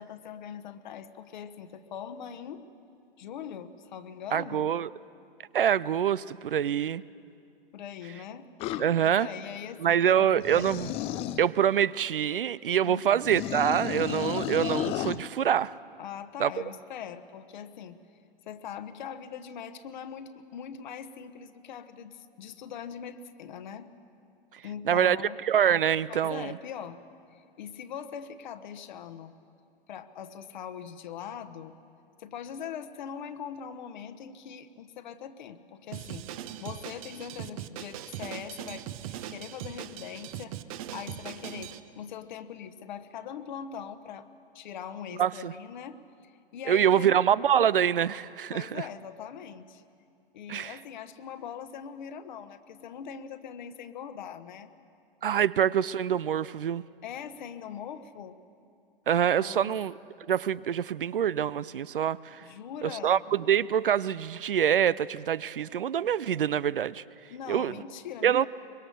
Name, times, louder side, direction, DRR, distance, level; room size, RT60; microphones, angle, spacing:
voice 1, 0.0-2.6 3.2-4.7 7.7-8.5 9.0-10.3 12.8-13.2 16.0-18.0 18.5-23.9 24.6-25.4 26.1-27.0 27.3-29.3 29.9-31.7 32.2-36.3 36.6-40.5 40.9-44.3 44.5-47.2 48.5-49.8 50.3-54.7 57.0-58.4 59.4-59.8 62.4-63.2 67.3-68.5, left 8 dB, 50° left, 9 dB, 1.2 m, -41 dB
voice 2, 4.3-4.9 5.5-7.0 8.8-9.3 9.8-10.9 11.4-15.7 16.4-16.5 24.9-25.2 25.4-26.5 45.2-45.5 46.7-48.8 50.5-50.8 55.2-56.8 59.1-59.9 60.3-62.4 62.8-67.0 67.5-67.8 68.2-68.5, right 9 dB, 65° right, 19 dB, 0.6 m, -25 dB
sound 1, 8.6-8.8 10.4-11.4 13.2-15.2, left 13 dB, 20° left, 0.5 m, -32 dB
Drum kit, 35.9-41.8, right 11 dB, 40° right, 0.9 m, -40 dB
23.5 x 22.0 x 6.6 m, 2.5 s
figure-of-eight pair, 110°, 29 cm